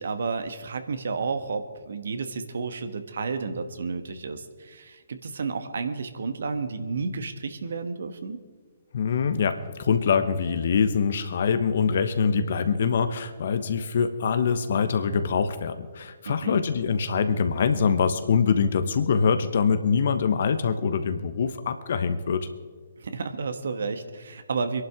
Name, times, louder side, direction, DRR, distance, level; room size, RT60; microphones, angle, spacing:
voice 1, 0.0-8.4 16.2-16.6 23.0-24.8, right 4 dB, 65° right, 9 dB, 1.3 m, -31 dB
voice 2, 8.9-22.5, left 6 dB, 55° left, 10 dB, 1.1 m, -24 dB
25.0 x 11.5 x 3.6 m, 1.5 s
figure-of-eight pair, 130°, 0 cm